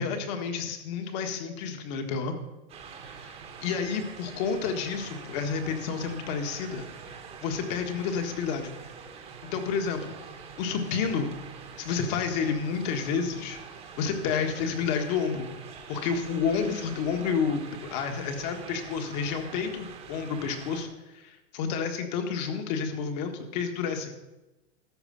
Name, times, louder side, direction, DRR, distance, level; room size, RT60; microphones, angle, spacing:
voice 1, 0.0-2.4 3.1-6.9 7.4-8.7 9.5-10.1 10.6-11.3 11.8-13.6 14.0-15.5 15.9-20.9 21.1-24.2, left 6 dB, 40° left, 5 dB, 1.6 m, -30 dB
sound 1, 2.7-20.9, right 6 dB, 20° right, 1.2 m, -45 dB
13.5 x 4.9 x 8.6 m, 1.0 s
supercardioid pair, 160°, 34 cm